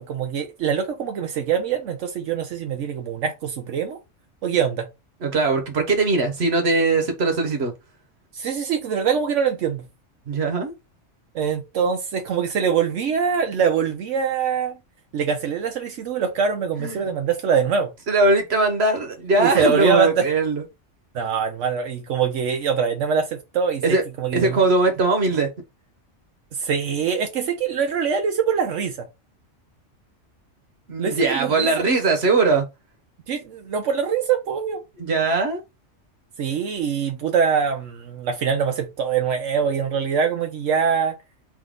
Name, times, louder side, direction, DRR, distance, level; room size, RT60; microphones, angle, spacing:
voice 1, 0.0-4.0 4.4-4.9 8.3-9.8 11.3-14.8 15.1-17.9 19.4-20.2 21.1-24.6 26.6-29.1 31.0-31.7 33.3-34.8 36.4-41.1, right 7 dB, 75° right, 1.0 m, -23 dB
voice 2, 5.2-7.7 10.3-10.7 16.8-17.1 18.1-20.6 23.8-24.0 24.3-25.5 30.9-32.7 35.0-35.6, right 3 dB, 60° right, 1.2 m, -20 dB
3.6 x 2.7 x 3.6 m
omnidirectional pair, 1.3 m